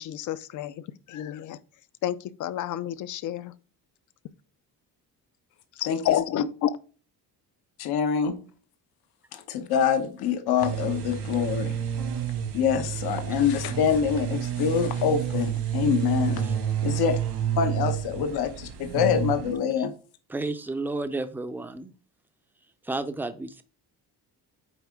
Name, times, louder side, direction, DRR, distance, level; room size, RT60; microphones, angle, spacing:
voice 1, 0.0-1.6 2.0-3.5 5.8-6.8, left 11 dB, 50° left, 0.5 m, -30 dB
voice 2, 5.9-6.2 7.8-8.4 9.3-11.7 12.5-16.4 16.8-17.2 17.6-19.9, left 7 dB, 75° left, 1.0 m, -25 dB
sound 1, 10.6-19.5, right 9 dB, 85° right, 2.0 m, -29 dB
voice 3, 20.3-21.9 22.8-23.6, right 2 dB, 5° right, 0.4 m, -32 dB
9.0 x 3.7 x 3.5 m
cardioid pair, 135°, 39 cm